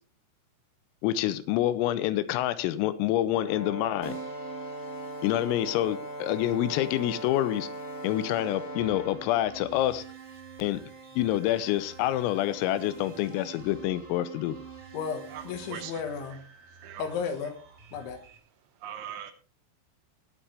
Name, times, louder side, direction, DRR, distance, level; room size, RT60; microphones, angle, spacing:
voice 1, 1.0-4.2 5.2-7.7 8.0-10.0 10.6-10.8 11.2-14.6, left 13 dB, 85° left, 3.5 m, -27 dB
Brass instrument, 3.3-9.2, equal, 55° left, 2.2 m, -39 dB
Keyboard (musical), 4.0-15.9, right 6 dB, 25° right, 0.7 m, -47 dB
sound 1, 8.8-18.4, right 4 dB, 55° right, 4.6 m, -54 dB
voice 2, 14.9-16.4 17.0-17.6 17.9-18.2, left 6 dB, 70° left, 3.8 m, -34 dB
voice 3, 15.7-16.0 16.8-17.1 18.8-19.3, right 10 dB, 75° right, 3.0 m, -40 dB
20.0 x 8.8 x 3.4 m
omnidirectional pair, 6.0 m